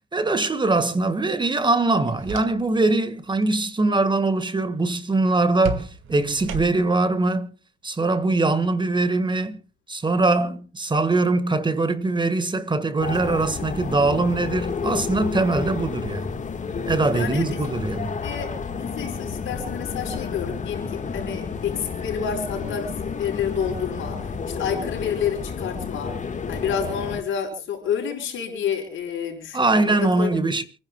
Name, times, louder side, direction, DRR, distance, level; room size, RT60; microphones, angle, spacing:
voice 1, 0.1-7.5 7.8-9.6 9.9-16.3 16.8-18.2 29.5-30.6, right 2 dB, 25° right, 1.6 m, -22 dB
sound 1, 1.9-2.9 3.2-3.6 5.6-7.0, right 5 dB, 80° right, 2.2 m, -34 dB
sound 2, 13.0-27.2, left 5 dB, 40° left, 1.7 m, -31 dB
voice 2, 17.1-17.6 18.2-18.5 18.7-22.9 23.2-24.2 24.5-26.1 26.5-30.4, left 7 dB, 75° left, 5.1 m, -29 dB
28.0 x 10.5 x 2.3 m
cardioid pair, 90°, 20 cm